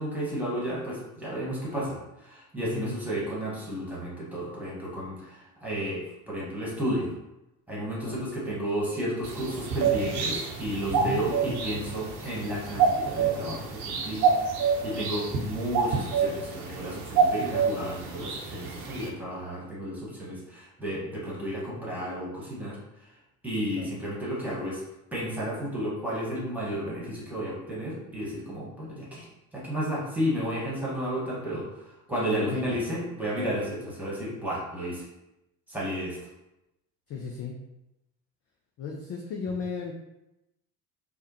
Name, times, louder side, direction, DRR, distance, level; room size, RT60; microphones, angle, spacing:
voice 1, 0.0-2.0 2.2-7.1 7.7-14.4 14.8-22.8 23.4-24.8 25.1-29.3 29.5-31.8 32.1-35.1 35.7-36.2, equal, 5° right, -7 dB, 1.5 m, -32 dB
voice 2, 2.5-2.9 8.0-8.2 10.9-11.2 23.6-23.9 32.3-32.8 37.1-37.6 38.8-39.9, left 5 dB, 30° left, 0 dB, 0.4 m, -35 dB
sound 1, 9.2-19.1, right 5 dB, 50° right, 0.8 m, -28 dB
3.5 x 2.1 x 2.9 m, 0.92 s
figure-of-eight pair, 60°, 48 cm